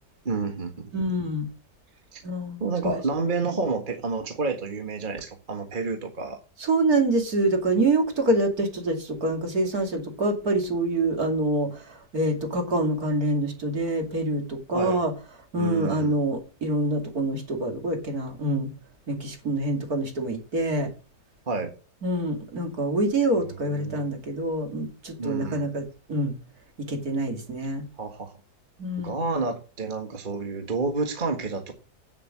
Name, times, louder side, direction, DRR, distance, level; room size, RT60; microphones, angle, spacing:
voice 1, 0.2-0.7 2.1-2.2 2.6-6.4 14.7-15.0 15.5-16.2 21.5-21.7 23.8-24.1 25.2-25.6 28.0-28.3 29.0-31.7, right 4 dB, 30° right, 1.7 m, -29 dB
voice 2, 0.9-1.5 2.2-3.0 6.6-15.1 15.5-18.7 19.1-20.9 22.0-26.3 26.8-27.8 28.8-29.2, right 1 dB, 60° right, 3.0 m, -26 dB
8.9 x 7.8 x 7.4 m
omnidirectional pair, 1.8 m